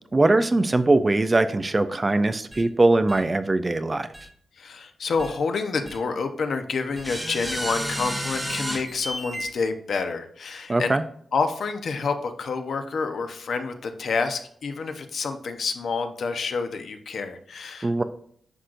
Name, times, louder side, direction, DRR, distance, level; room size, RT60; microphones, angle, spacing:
voice 1, 0.1-4.1 10.7-11.0 17.8-18.0, right 2 dB, 20° right, 11 dB, 0.4 m, -21 dB
sound 1, 2.5-2.6 3.1-3.2 4.1-4.3 5.2-5.3 5.9-6.0 7.0-9.5, equal, 5° right, 0.9 m, -31 dB
voice 2, 4.5-11.0 11.3-18.0, left 4 dB, 60° left, 7 dB, 0.9 m, -28 dB
9.8 x 6.4 x 2.6 m, 0.63 s
wide cardioid pair, 165°, 0 cm